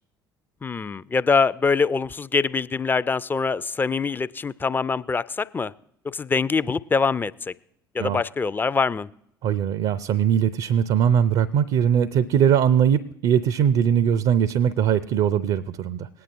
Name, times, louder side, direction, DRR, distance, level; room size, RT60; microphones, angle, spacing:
voice 1, 0.6-5.7 6.0-7.5 7.9-9.1, left 4 dB, 15° left, 18 dB, 0.4 m, -24 dB
voice 2, 9.4-16.1, right 8 dB, 50° right, 16 dB, 0.5 m, -21 dB
19.5 x 9.5 x 2.6 m, 0.76 s
figure-of-eight pair, 55°, 12 cm